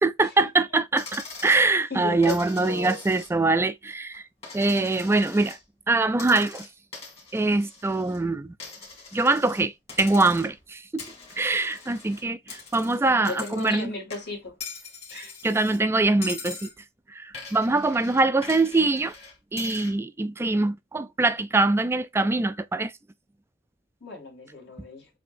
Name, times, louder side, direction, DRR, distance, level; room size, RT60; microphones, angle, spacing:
voice 1, 0.0-4.2 4.5-5.6 5.9-6.7 7.3-8.5 9.1-9.7 10.0-11.1 11.4-13.9 15.1-16.7 17.1-19.1 19.5-22.9, right 2 dB, 15° right, 0.3 m, -23 dB
Coin (dropping), 1.0-1.6 2.2-3.5 3.9-5.6 6.1-8.2 8.6-9.6 9.9-10.6 11.0-13.8 14.1-15.8 16.2-16.8 17.3-20.0, left 4 dB, 35° left, 2.2 m, -42 dB
voice 2, 1.9-3.0 13.3-14.6 15.1-15.3 24.0-25.1, left 3 dB, 70° left, 2.4 m, -35 dB
7.4 x 2.7 x 2.6 m
head